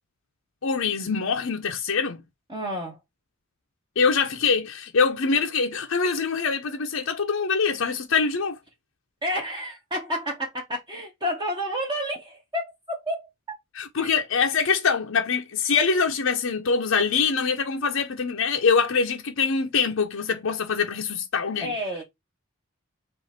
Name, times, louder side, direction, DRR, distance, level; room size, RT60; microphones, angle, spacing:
voice 1, 0.6-2.2 4.0-8.6 13.8-21.7, left 5 dB, 70° left, 0.6 m, -24 dB
voice 2, 2.5-3.0 9.2-13.3 14.0-14.1 21.6-22.0, equal, 20° right, 1.0 m, -30 dB
5.0 x 2.5 x 4.2 m
head